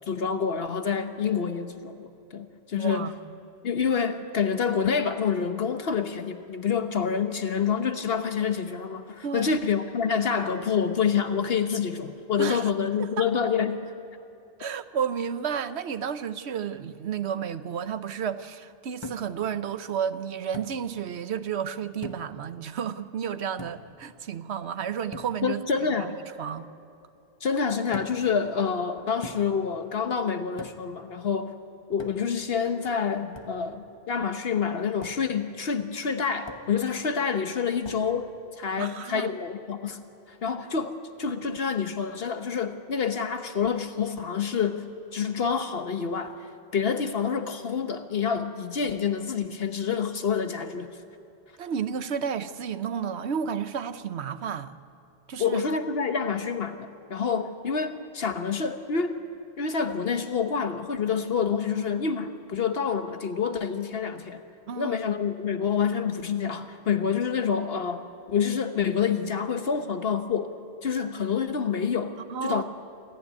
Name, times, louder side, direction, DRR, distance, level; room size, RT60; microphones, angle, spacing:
voice 1, 0.1-3.1 3.6-13.8 25.4-26.1 27.4-31.5 31.9-38.3 38.6-40.0 40.3-40.9 41.2-51.0 55.4-59.2 59.6-64.4 64.8-68.0 68.3-70.5 70.8-72.6, left 6 dB, 65° left, 1.2 m, -27 dB
voice 2, 2.8-3.1 9.2-9.5 12.4-12.7 13.0-13.3 14.6-25.6 26.0-26.1 26.4-26.7 38.8-39.3 51.6-54.7 55.3-55.6 64.7-65.0 72.3-72.6, right 7 dB, 90° right, 1.1 m, -32 dB
sound 1, 19.0-19.4 20.5-20.8 22.0-22.4 23.6-24.0 25.1-25.4 27.9-28.3 29.2-29.6 30.6-30.9 32.0-32.4 33.3-33.6 35.0-35.2 36.5-36.8 37.8-38.1, left 2 dB, 25° left, 1.1 m, -41 dB
27.5 x 14.0 x 9.6 m
omnidirectional pair, 1.1 m